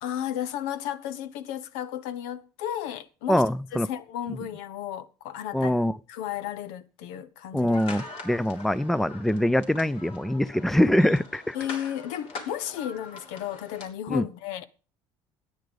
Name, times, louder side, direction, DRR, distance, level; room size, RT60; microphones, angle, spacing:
voice 1, 0.0-3.4 3.8-5.8 6.1-7.8 11.5-14.6, left 10 dB, 85° left, 0.9 m, -33 dB
voice 2, 3.3-3.9 5.5-6.0 7.5-11.6 14.1-14.3, left 1 dB, 5° left, 0.5 m, -24 dB
sound 1, 7.7-13.9, left 3 dB, 60° left, 3.6 m, -43 dB
13.0 x 9.4 x 5.2 m
supercardioid pair, 100°, 10 cm